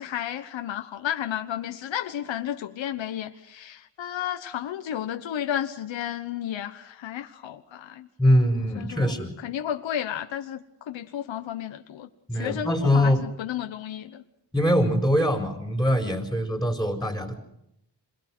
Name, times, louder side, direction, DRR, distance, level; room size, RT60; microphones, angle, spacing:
voice 1, 0.0-8.1 8.8-9.1 9.4-12.1 12.3-14.2, left 10 dB, 85° left, 7 dB, 1.2 m, -32 dB
voice 2, 8.2-9.4 12.3-13.2 14.5-17.4, equal, ahead, 3 dB, 4.6 m, -23 dB
27.0 x 22.0 x 6.3 m, 0.76 s
cardioid pair, 90°, 44 cm